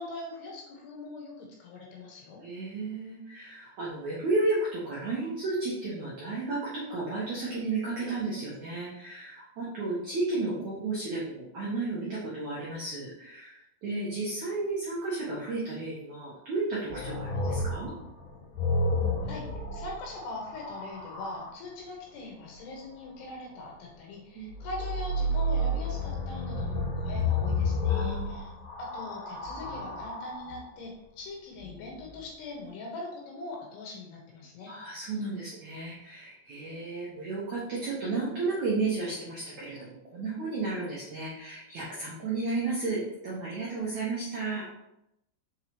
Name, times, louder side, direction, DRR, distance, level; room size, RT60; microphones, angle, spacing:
voice 1, 0.0-2.4 19.3-28.5 28.8-34.7, left 2 dB, 70° left, -1 dB, 3.0 m, -41 dB
voice 2, 2.4-17.9 24.3-24.5 27.9-28.6 34.7-44.7, right 3 dB, 80° right, -6 dB, 1.6 m, -33 dB
sound 1, 16.9-21.5 24.5-30.6 31.6-32.2, left 2 dB, 50° left, 3.0 m, -31 dB
6.8 x 4.8 x 3.0 m, 0.84 s
omnidirectional pair, 5.4 m